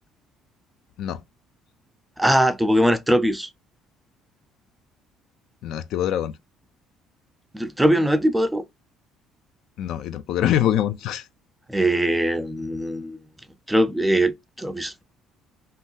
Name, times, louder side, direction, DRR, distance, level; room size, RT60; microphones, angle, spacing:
voice 1, 2.2-3.5 7.5-8.6 11.7-13.2 13.7-15.0, right 1 dB, 5° right, 0.4 m, -21 dB
voice 2, 5.6-6.3 9.8-11.3, left 11 dB, 70° left, 0.3 m, -24 dB
2.7 x 2.3 x 3.4 m
cardioid pair, 115°, 0 cm